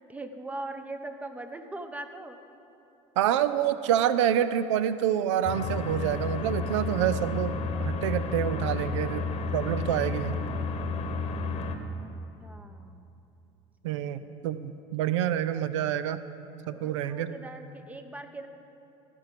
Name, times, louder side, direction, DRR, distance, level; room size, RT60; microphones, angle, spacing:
voice 1, 0.1-2.4 12.4-13.1 13.9-14.3 16.7-18.5, right 2 dB, 10° right, 8 dB, 0.8 m, -41 dB
voice 2, 3.2-10.4 13.8-16.2 16.7-17.3, right 10 dB, 85° right, 13 dB, 0.4 m, -27 dB
sound 1, 5.5-11.8, left 4 dB, 45° left, 1.0 m, -31 dB
14.0 x 5.3 x 7.5 m, 2.8 s
hypercardioid pair, 85°, 15 cm